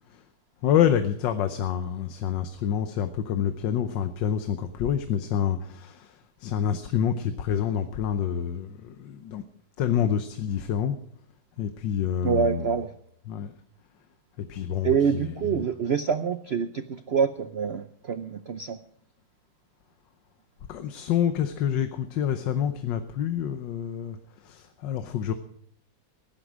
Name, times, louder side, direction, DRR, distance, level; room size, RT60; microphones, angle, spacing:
voice 1, 0.6-9.4 9.8-11.0 11.6-12.7 13.3-13.5 14.4-15.6 20.7-24.2 24.4-25.3, left 9 dB, 80° left, 9 dB, 1.5 m, -27 dB
voice 2, 12.2-12.9 14.8-18.8, right 6 dB, 75° right, 11 dB, 0.5 m, -26 dB
16.0 x 11.5 x 6.2 m, 0.67 s
omnidirectional pair, 2.0 m